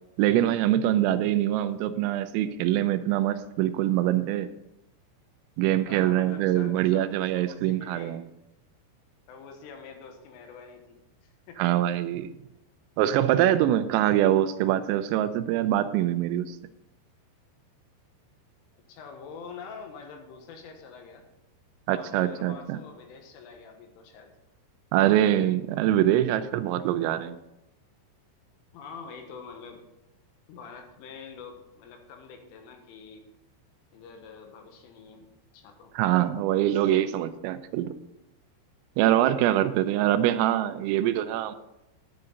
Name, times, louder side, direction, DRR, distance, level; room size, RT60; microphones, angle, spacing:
voice 1, 0.2-4.5 5.6-8.2 11.6-12.3 13.0-16.6 21.9-22.8 24.9-27.4 36.0-37.9 39.0-41.5, right 12 dB, 85° right, 11 dB, 3.3 m, -24 dB
voice 2, 5.9-8.2 9.3-11.8 18.9-21.3 21.9-24.3 28.7-29.8 30.5-33.2 33.9-35.9, left 5 dB, 75° left, 5 dB, 3.7 m, -46 dB
11.0 x 9.7 x 3.9 m, 0.91 s
omnidirectional pair, 5.9 m